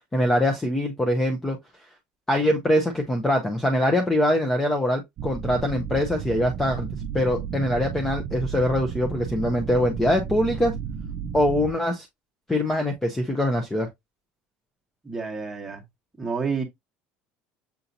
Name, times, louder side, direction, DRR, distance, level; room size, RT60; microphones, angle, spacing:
voice 1, 0.1-1.6 2.3-6.9 7.1-10.7 11.3-12.1 12.5-13.9, left 1 dB, 10° left, 0.5 m, -23 dB
sound 1, 5.2-11.7, right 7 dB, 40° right, 0.4 m, -33 dB
voice 2, 15.0-15.8 16.2-16.6, right 5 dB, 10° right, 1.1 m, -29 dB
6.9 x 2.7 x 2.5 m
cardioid pair, 160°, 4 cm